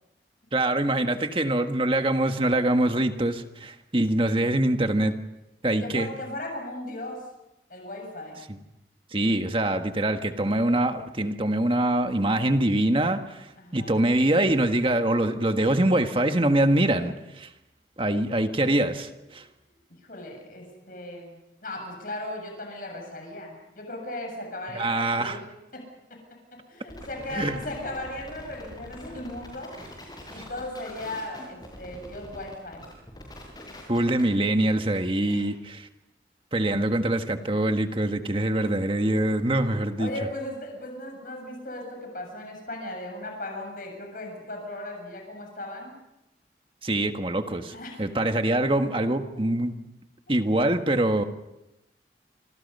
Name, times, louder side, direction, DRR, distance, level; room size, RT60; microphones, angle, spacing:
voice 1, 0.5-5.1 5.6-6.1 8.5-8.6 9.1-17.5 18.0-19.4 24.7-25.4 27.3-27.6 33.9-35.9 36.5-40.1 46.8-49.8 50.3-51.2, right 1 dB, 30° right, 7 dB, 1.5 m, -24 dB
voice 2, 5.8-7.3 7.7-8.4 13.6-14.0 20.0-25.4 25.7-25.8 26.5-29.8 30.3-32.9 35.3-35.5 40.0-46.0 47.7-48.0, left 1 dB, 50° left, 2 dB, 7.3 m, -37 dB
sound 1, 26.9-34.4, left 1 dB, 25° left, 6.6 m, -44 dB
27.0 x 25.5 x 5.5 m, 0.93 s
head